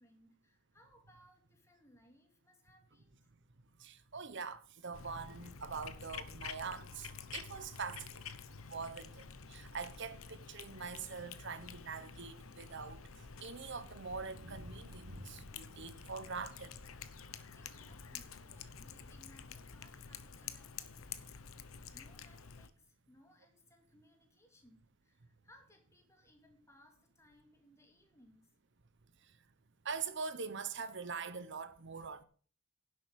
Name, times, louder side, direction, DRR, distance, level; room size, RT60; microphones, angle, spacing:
voice 1, 0.0-3.3 17.5-21.4 21.9-28.5, left 1 dB, 15° left, 2.5 m, -65 dB
voice 2, 3.8-8.2 8.7-9.2 9.5-13.0 13.4-16.7 29.8-32.2, right 5 dB, 55° right, 1.1 m, -43 dB
Cat, 4.9-22.7, left 6 dB, 75° left, 1.0 m, -49 dB
sound 1, 14.0-21.6, equal, 80° right, 2.1 m, -58 dB
11.0 x 7.7 x 6.5 m
head